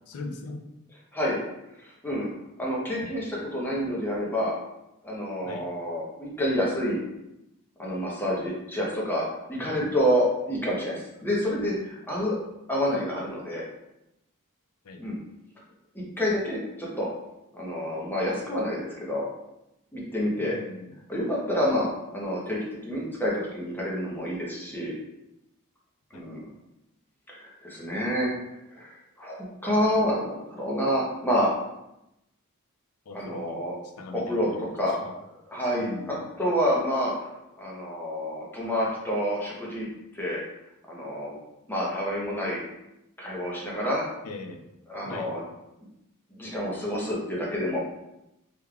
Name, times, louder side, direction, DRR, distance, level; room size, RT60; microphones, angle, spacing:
voice 1, 0.1-0.6 3.0-3.2 5.4-5.7 9.5-10.0 14.8-15.1 20.4-21.0 26.1-26.3 33.1-33.6 34.0-35.1 35.8-36.3 44.2-44.6 45.0-45.4, left 2 dB, 80° left, 5 dB, 0.4 m, -40 dB
voice 2, 1.8-2.3 2.6-4.5 5.0-7.0 7.8-12.4 12.7-13.6 15.0-15.2 15.9-17.1 17.5-19.3 19.9-20.6 21.1-24.9 26.1-26.4 27.3-28.3 28.7-31.5 33.1-33.8 34.1-34.5 34.8-35.0 35.5-37.3 37.6-39.9 40.1-40.4 40.9-41.4 41.7-42.6 43.2-44.1 44.9-45.4 46.3-47.8, equal, 10° left, -5 dB, 0.8 m, -28 dB
3.4 x 3.3 x 2.3 m, 0.89 s
head